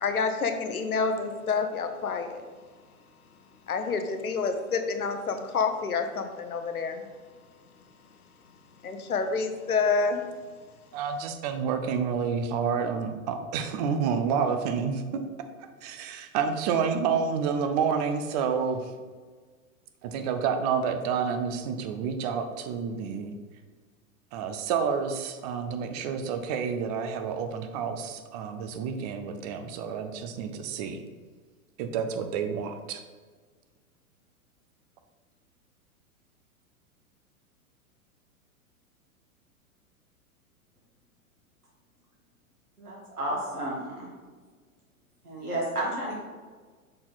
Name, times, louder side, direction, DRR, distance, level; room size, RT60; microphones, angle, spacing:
voice 1, 0.0-2.4 3.7-7.0 8.8-10.2, left 5 dB, 80° left, 7 dB, 0.8 m, -28 dB
voice 2, 10.9-15.3 15.6-18.9 20.0-23.4 24.3-31.0 31.8-33.0, right 6 dB, 30° right, 8 dB, 0.5 m, -29 dB
voice 3, 42.8-44.1 45.2-46.2, right 1 dB, 85° right, -5 dB, 1.9 m, -32 dB
6.4 x 4.3 x 4.0 m, 1.5 s
figure-of-eight pair, 100°, 43 cm